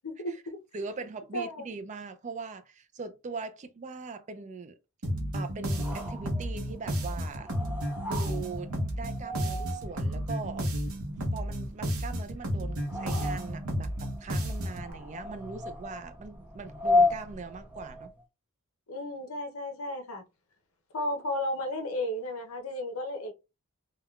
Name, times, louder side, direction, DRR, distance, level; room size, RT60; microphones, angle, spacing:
voice 1, 0.2-0.6 1.3-1.7 18.9-20.2 20.9-23.3, left 1 dB, 75° left, 0.7 m, -33 dB
voice 2, 0.7-4.8 5.3-7.5 8.0-8.7 8.9-10.7 11.3-18.1, right 4 dB, 35° right, 0.3 m, -41 dB
sound 1, 5.0-14.9, equal, 75° right, 0.8 m, -32 dB
sound 2, 5.6-18.2, left 2 dB, 10° right, 0.8 m, -34 dB
3.4 x 2.2 x 2.3 m
head